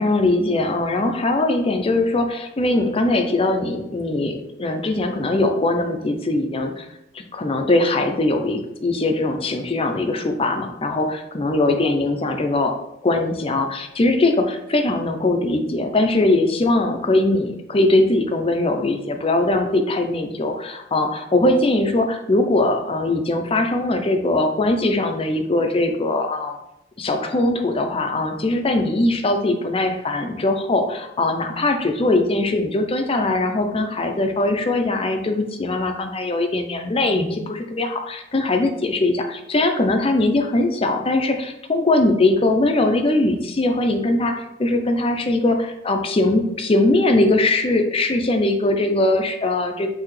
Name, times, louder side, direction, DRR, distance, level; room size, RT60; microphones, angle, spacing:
voice 1, 0.0-6.9 7.1-12.7 13.0-26.5 27.0-49.9, left 2 dB, 30° left, 4 dB, 0.5 m, -21 dB
5.7 x 2.9 x 3.2 m, 0.84 s
head